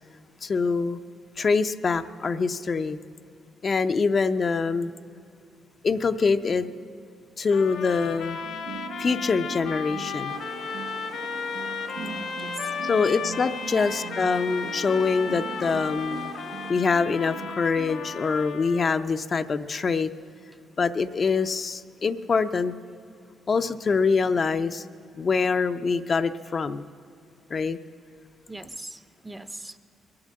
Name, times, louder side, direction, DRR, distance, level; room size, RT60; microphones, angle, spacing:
voice 1, 0.4-1.0 1.4-3.0 3.6-4.9 5.8-6.7 7.4-8.4 9.0-10.4 12.8-16.3 16.7-20.1 20.8-22.7 23.5-24.8 25.2-26.9 27.5-27.8, left 4 dB, 40° left, 9 dB, 0.5 m, -24 dB
sound 1, 7.5-19.1, left 6 dB, 70° left, 1.2 m, -35 dB
sound 2, 8.4-18.5, right 7 dB, 85° right, 0.4 m, -41 dB
sound 3, 10.3-16.7, right 5 dB, 50° right, 0.8 m, -47 dB
voice 2, 11.9-13.2 13.7-14.1 28.5-29.8, right 2 dB, 15° right, 13 dB, 0.6 m, -40 dB
22.0 x 8.7 x 7.5 m, 2.5 s
cardioid pair, 90°, 0 cm